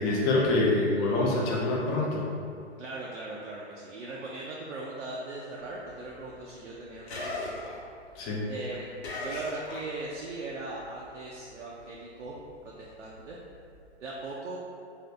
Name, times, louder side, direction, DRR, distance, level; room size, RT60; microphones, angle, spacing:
voice 1, 0.0-2.3 8.2-8.5, left 2 dB, 25° left, -3 dB, 0.4 m, -26 dB
voice 2, 2.8-7.6 8.5-12.4 12.6-13.4 14.0-14.6, right 2 dB, 80° right, -4 dB, 0.5 m, -39 dB
sound 1, 5.6-10.3 10.6-13.9, left 2 dB, 60° left, 0.7 m, -41 dB
2.7 x 2.5 x 3.1 m, 2.4 s
figure-of-eight pair, 115°, 36 cm